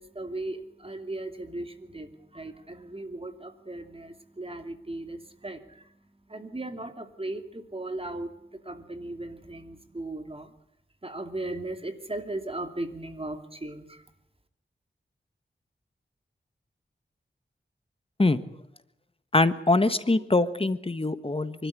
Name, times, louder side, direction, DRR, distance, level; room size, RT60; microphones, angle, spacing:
voice 1, 0.0-10.5 11.0-14.0, right 2 dB, 30° right, 7 dB, 2.6 m, -37 dB
voice 2, 19.3-21.7, left 2 dB, 30° left, 12 dB, 1.4 m, -23 dB
24.5 x 13.0 x 9.8 m, 0.76 s
wide cardioid pair, 60°, 19 cm